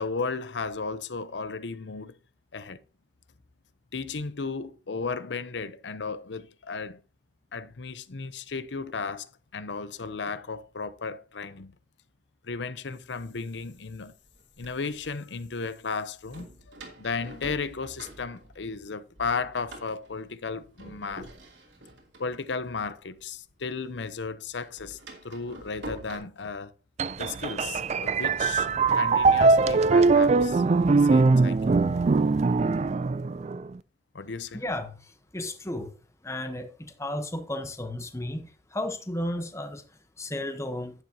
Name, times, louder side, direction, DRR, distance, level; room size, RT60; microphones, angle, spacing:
voice 1, 0.0-2.1 2.5-2.8 3.9-7.0 7.5-11.7 12.5-14.1 14.6-21.3 22.2-25.0 25.2-26.7 27.2-28.7 28.9-31.8 34.1-34.6, left 4 dB, 85° left, 0.8 m, -34 dB
Door, 13.1-13.2 14.0-15.1 16.3-18.9 19.2-23.7 23.9-26.2, right 1 dB, 90° right, 2.9 m, -46 dB
sound 1, 27.0-33.7, right 4 dB, 40° right, 0.4 m, -22 dB
voice 2, 34.5-36.0 36.2-40.9, left 1 dB, 15° left, 1.0 m, -34 dB
11.0 x 9.1 x 2.8 m
head